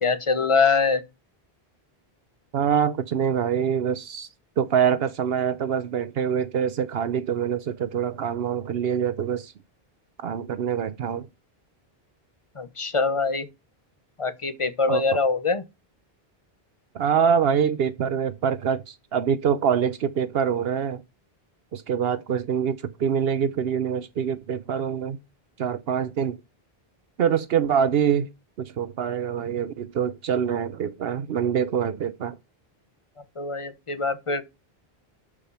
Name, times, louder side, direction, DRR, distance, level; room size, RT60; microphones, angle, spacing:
voice 1, 0.0-1.0 12.6-13.5 14.2-15.6 33.4-34.4, left 4 dB, 30° left, 1.1 m, -23 dB
voice 2, 2.5-4.3 4.6-9.5 10.2-11.3 14.9-15.0 16.9-21.0 21.7-25.2 25.6-26.4 27.2-28.3 28.6-32.4, right 8 dB, 75° right, 0.9 m, -25 dB
12.0 x 5.0 x 5.7 m
omnidirectional pair, 1.0 m